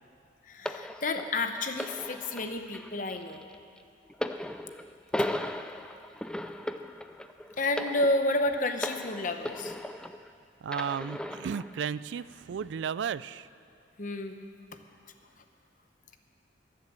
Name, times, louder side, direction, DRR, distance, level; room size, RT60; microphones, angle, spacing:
voice 1, 0.5-3.4 5.2-5.3 7.6-9.7 14.0-14.4, left 2 dB, 45° left, 7 dB, 0.9 m, -30 dB
sound 1, 0.7-10.3 10.7-11.7 12.5-12.7, left 1 dB, 5° left, 0.3 m, -37 dB
voice 2, 10.6-13.5, right 7 dB, 75° right, 18 dB, 0.3 m, -34 dB
22.0 x 7.5 x 7.5 m, 2.4 s
head